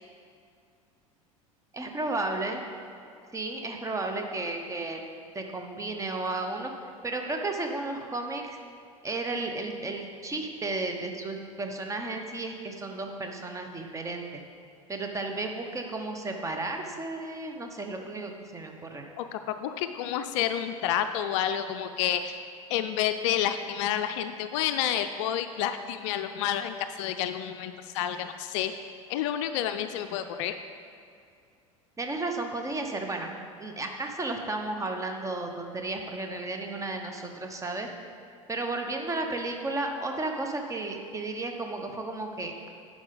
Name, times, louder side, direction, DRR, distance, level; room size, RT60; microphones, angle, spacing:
voice 1, 1.7-2.6 3.3-5.0 5.3-6.7 7.0-8.6 9.0-14.4 14.9-19.1 32.0-37.9 38.5-42.7, right 2 dB, 15° right, 4 dB, 0.9 m, -33 dB
voice 2, 19.2-22.4 22.7-28.7 29.1-30.6, left 10 dB, 55° left, 9 dB, 0.4 m, -29 dB
10.5 x 4.9 x 3.9 m, 2.5 s
figure-of-eight pair, 75°, 18 cm